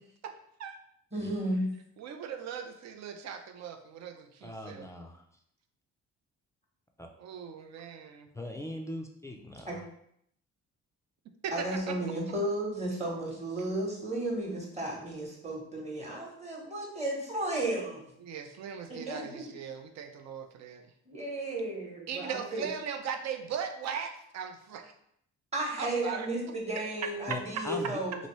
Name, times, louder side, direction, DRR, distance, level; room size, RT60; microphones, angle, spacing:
voice 1, 1.1-1.7 9.7-9.8 11.5-18.1 18.9-19.5 21.1-22.7 25.5-28.2, right 1 dB, 20° right, -1 dB, 1.1 m, -34 dB
voice 2, 2.0-4.9 7.2-8.3 11.4-12.2 18.2-20.9 22.1-24.9 25.8-26.3 27.0-27.1, right 7 dB, 60° right, 7 dB, 0.5 m, -39 dB
voice 3, 4.4-5.2 7.0-7.1 8.3-9.8 27.3-27.4 27.6-28.0, left 1 dB, 10° left, 2 dB, 0.3 m, -39 dB
2.9 x 2.6 x 3.0 m, 0.70 s
cardioid pair, 90°, 30 cm